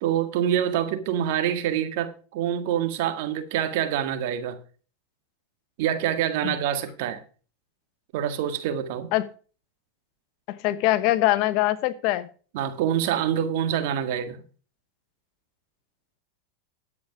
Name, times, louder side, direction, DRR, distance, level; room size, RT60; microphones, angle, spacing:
voice 1, 0.0-4.6 5.8-7.2 8.1-9.1 12.5-14.4, right 10 dB, 65° right, 1.8 m, -26 dB
voice 2, 10.6-12.3, left 16 dB, 55° left, 1.1 m, -22 dB
11.0 x 8.3 x 5.1 m
hypercardioid pair, 110°, 0 cm